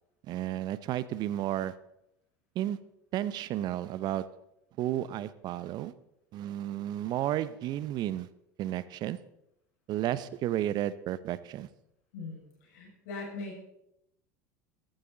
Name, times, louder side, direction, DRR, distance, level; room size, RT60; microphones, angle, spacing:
voice 1, 0.3-1.7 2.5-2.8 3.1-4.2 4.8-5.9 6.3-8.3 8.6-9.2 9.9-11.7, right 12 dB, 50° right, 16 dB, 0.8 m, -32 dB
voice 2, 12.1-13.6, left 3 dB, 70° left, -2 dB, 6.3 m, -41 dB
14.5 x 13.0 x 4.0 m, 0.78 s
hypercardioid pair, 75°, 9 cm